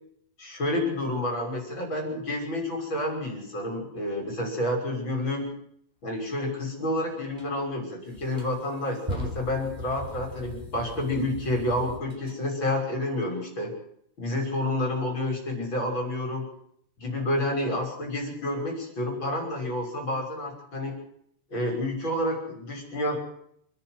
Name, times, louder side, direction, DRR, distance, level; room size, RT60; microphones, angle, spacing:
voice 1, 0.4-5.5 6.0-13.7 14.2-16.5 17.0-20.9 21.5-23.2, left 1 dB, 35° left, 1 dB, 6.6 m, -29 dB
sound 1, 7.4-7.5 8.1-12.4, equal, 10° right, 4.8 m, -39 dB
28.0 x 10.5 x 9.5 m, 0.69 s
omnidirectional pair, 3.9 m